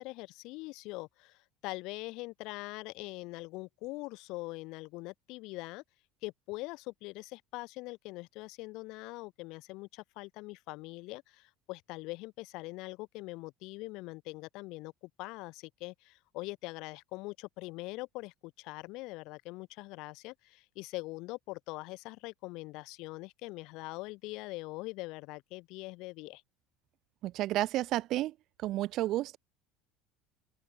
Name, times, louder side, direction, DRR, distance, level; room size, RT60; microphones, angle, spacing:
voice 1, 0.0-5.8 6.2-14.9 15.2-26.4, left 23 dB, 55° left, 4.0 m, -43 dB
voice 2, 27.2-29.4, right 15 dB, 45° right, 0.5 m, -32 dB
open air
cardioid pair, 165°, 0 cm